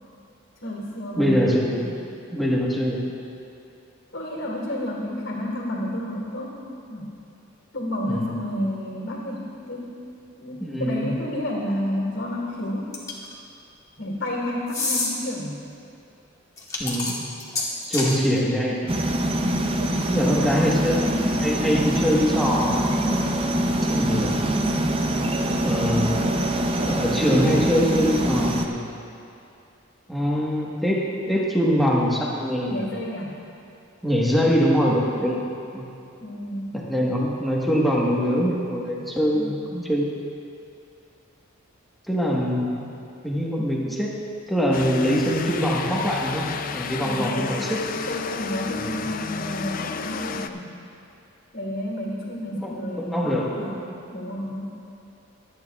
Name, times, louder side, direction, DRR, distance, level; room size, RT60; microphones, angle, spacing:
voice 1, 0.6-1.4 4.1-6.6 6.9-7.1 7.7-10.0 10.4-13.0 14.0-15.6 19.7-20.6 32.7-33.4 36.2-36.8 47.0-47.7 48.1-50.7 51.5-54.7, left 1 dB, 60° left, -4 dB, 2.0 m, -30 dB
voice 2, 1.2-2.0 2.3-3.0 8.0-8.3 10.6-11.1 16.8-17.2 17.9-19.0 20.1-23.0 23.9-24.4 25.6-26.3 26.9-28.9 30.1-32.9 34.0-35.4 35.7-35.9 36.7-40.1 42.1-42.9 43.2-44.1 44.5-46.5 46.7-47.8 48.7-49.1 52.5-53.4, equal, ahead, -5 dB, 1.3 m, -23 dB
sound 1, 12.9-13.3 14.7-15.1 16.6-18.2, left 3 dB, 15° left, 1.3 m, -27 dB
sound 2, 18.9-28.7, right 1 dB, 25° right, 0.5 m, -24 dB
sound 3, 44.7-50.5, left 5 dB, 40° left, 0.3 m, -31 dB
23.5 x 9.3 x 2.4 m, 2.6 s
head